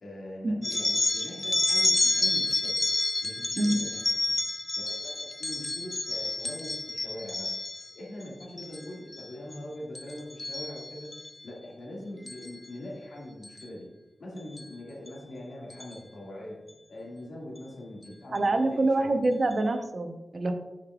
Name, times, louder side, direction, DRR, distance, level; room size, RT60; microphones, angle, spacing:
voice 1, 0.0-2.9 3.2-4.0 4.3-4.4 4.8-7.5 7.9-11.1 11.4-13.9 14.2-16.6 16.9-19.2, left 1 dB, 75° left, -3 dB, 1.9 m, -42 dB
sound 1, 0.6-7.9 8.4-8.8 9.1-9.6 9.9-11.3 12.3-12.5 13.4-13.6 14.6-14.7 15.1-15.2 15.7-15.9, left 2 dB, 35° left, 0.4 m, -29 dB
voice 2, 18.3-20.5, right 2 dB, 50° right, 6 dB, 0.7 m, -26 dB
8.2 x 5.0 x 2.4 m, 1.0 s
cardioid pair, 70°, 0 cm